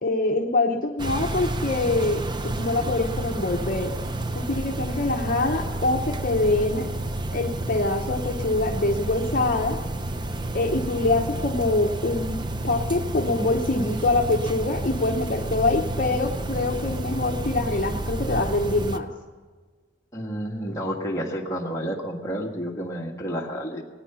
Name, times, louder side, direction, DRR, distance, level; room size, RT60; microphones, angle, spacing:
voice 1, 0.0-3.9 4.3-6.9 7.3-9.8 10.5-19.1, left 2 dB, 50° left, 2 dB, 0.8 m, -24 dB
sound 1, 1.0-19.0, right 2 dB, 25° right, 0.6 m, -30 dB
voice 2, 20.1-23.8, equal, 15° left, -1 dB, 1.6 m, -30 dB
19.0 x 9.4 x 6.9 m, 1.4 s
head